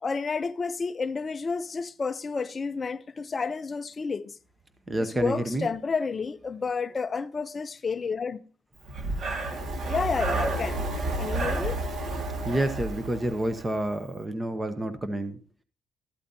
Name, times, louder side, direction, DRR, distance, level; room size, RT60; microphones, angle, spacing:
voice 1, 0.0-4.3 5.0-8.4 9.9-10.9 11.2-11.8, left 5 dB, 25° left, 0.4 m, -30 dB
voice 2, 4.9-5.7 12.4-15.4, right 1 dB, 15° right, 0.7 m, -29 dB
Breathing, 8.8-13.8, right 2 dB, 45° right, 1.8 m, -30 dB
13.0 x 12.0 x 2.7 m
cardioid pair, 165°, 0 cm